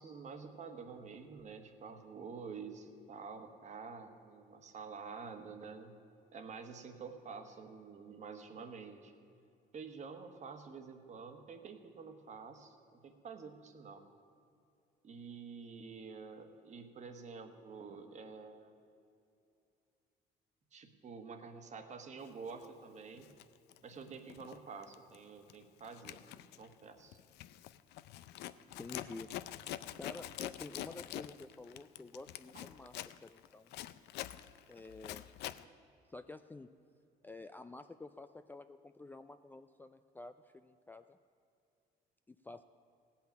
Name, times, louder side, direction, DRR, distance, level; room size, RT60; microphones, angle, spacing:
voice 1, 0.0-6.0 6.3-9.1 9.7-14.0 15.0-18.7 20.7-23.3 23.8-26.2 26.6-27.2 32.5-32.7, right 5 dB, 45° right, 7 dB, 1.3 m, -48 dB
Zipper (clothing), 22.5-22.7 23.2-24.6 24.8-25.2 25.5-35.6, left 13 dB, 80° left, 0.5 m, -46 dB
voice 2, 28.8-29.3 30.0-32.9 33.2-33.7 34.7-35.2 36.1-36.7 37.2-41.2 42.3-42.6, left 2 dB, 10° left, 9 dB, 0.3 m, -50 dB
16.5 x 5.9 x 8.8 m, 2.6 s
cardioid pair, 110°, 17 cm